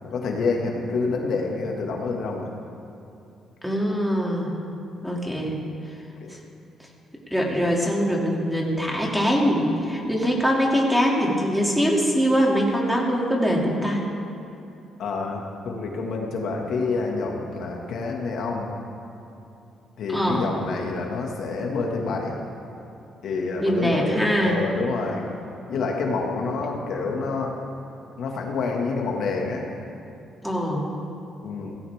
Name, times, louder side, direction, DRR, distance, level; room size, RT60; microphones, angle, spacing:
voice 1, 0.0-2.5 6.2-6.3 15.0-18.7 20.0-22.4 23.2-25.3 25.7-27.5 28.2-29.7 31.4-31.8, left 4 dB, 70° left, 0 dB, 2.1 m, -28 dB
voice 2, 3.6-4.6 5.0-5.6 6.3-6.4 7.3-14.0 20.1-20.5 23.6-24.6 30.4-30.8, equal, ahead, -2 dB, 2.8 m, -23 dB
16.5 x 16.5 x 3.7 m, 2.7 s
cardioid pair, 90°, 0 cm